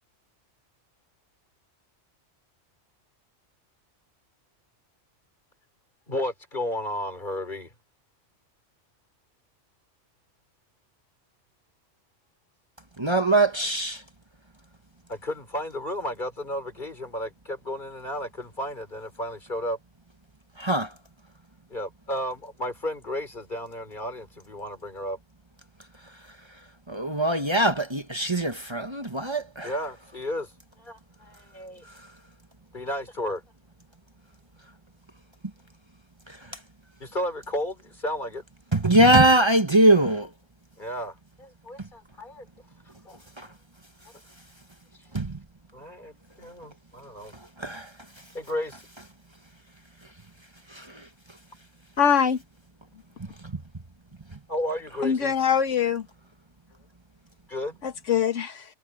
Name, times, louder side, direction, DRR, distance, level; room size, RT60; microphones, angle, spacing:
voice 1, 6.1-7.7 15.1-19.8 21.7-25.2 29.6-30.5 30.8-31.8 32.7-33.4 37.0-38.4 40.8-42.5 43.0-43.2 45.7-47.3 48.3-48.8 54.5-55.3 57.5-57.8, left 1 dB, 40° left, 4.3 m, -33 dB
voice 2, 13.0-14.0 20.6-20.9 26.9-29.7 38.7-40.3 43.4-43.5 45.1-45.4 47.6-47.9 50.7-51.0 53.4-53.6, right 1 dB, 25° right, 1.3 m, -22 dB
voice 3, 52.0-52.4 55.0-56.1 57.8-58.6, left 7 dB, 90° left, 1.7 m, -23 dB
omnidirectional pair, 1.2 m